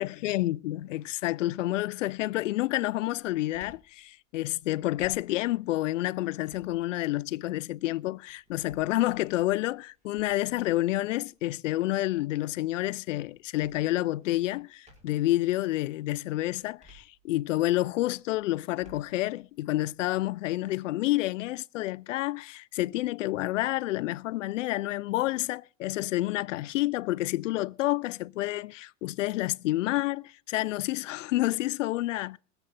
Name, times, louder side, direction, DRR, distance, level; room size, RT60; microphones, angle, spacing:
voice 1, 0.0-32.4, left 16 dB, 80° left, 0.5 m, -29 dB
sound 1, 1.0-1.4 1.9-15.4 15.9-17.7 18.1-20.7, right 1 dB, 20° right, 5.2 m, -61 dB
22.0 x 7.9 x 4.0 m
hypercardioid pair, 95°, 37 cm